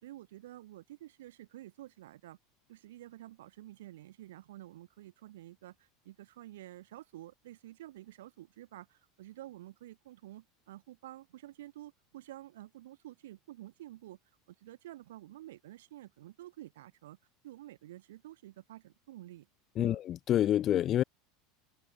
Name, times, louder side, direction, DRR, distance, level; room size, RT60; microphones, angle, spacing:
voice 1, 0.0-2.4 2.7-14.2 14.5-17.2 17.4-19.5 19.8-20.0, right 15 dB, 90° right, 3.4 m, -50 dB
voice 2, 19.8-21.0, left 11 dB, 40° left, 0.4 m, -27 dB
supercardioid pair, 120°, 0 cm